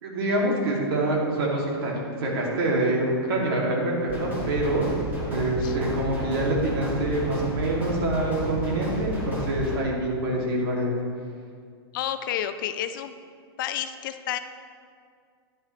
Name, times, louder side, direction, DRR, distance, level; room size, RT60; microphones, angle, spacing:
voice 1, 0.0-4.9 5.3-11.0, right 1 dB, 65° right, -2 dB, 2.5 m, -26 dB
sound 1, 4.1-9.8, equal, 15° right, 2.1 m, -31 dB
voice 2, 11.9-13.1 13.6-14.4, left 11 dB, 55° left, 10 dB, 0.5 m, -30 dB
10.5 x 8.8 x 3.2 m, 2.2 s
hypercardioid pair, 150°, 13 cm